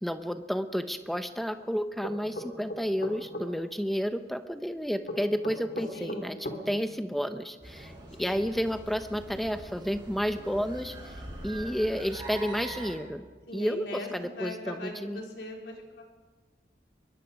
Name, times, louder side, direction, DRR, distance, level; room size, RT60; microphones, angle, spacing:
voice 1, 0.0-7.9 8.2-11.1 11.4-13.3 13.5-15.2, equal, ahead, 8 dB, 0.9 m, -31 dB
sound 1, 2.0-3.5 5.1-6.6, left 1 dB, 60° left, 3.2 m, -36 dB
voice 2, 5.9-6.4 8.2-8.5 13.5-16.1, left 1 dB, 80° left, 0 dB, 4.4 m, -40 dB
sound 2, 7.6-12.9, right 1 dB, 25° right, 6.2 m, -43 dB
24.0 x 22.0 x 5.3 m, 1.4 s
head